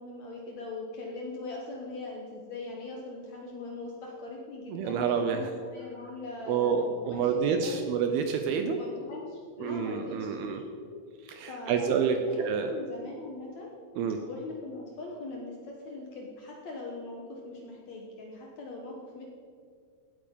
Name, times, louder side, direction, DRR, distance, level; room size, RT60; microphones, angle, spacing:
voice 1, 0.0-7.8 8.7-10.9 11.5-11.8 12.2-13.7 14.3-19.2, left 2 dB, 70° left, -1 dB, 1.7 m, -41 dB
voice 2, 4.7-5.5 6.5-8.8 9.6-10.6 11.3-12.7 14.0-14.2, right 6 dB, 80° right, 6 dB, 2.3 m, -28 dB
17.0 x 8.7 x 5.3 m, 2.1 s
omnidirectional pair, 5.2 m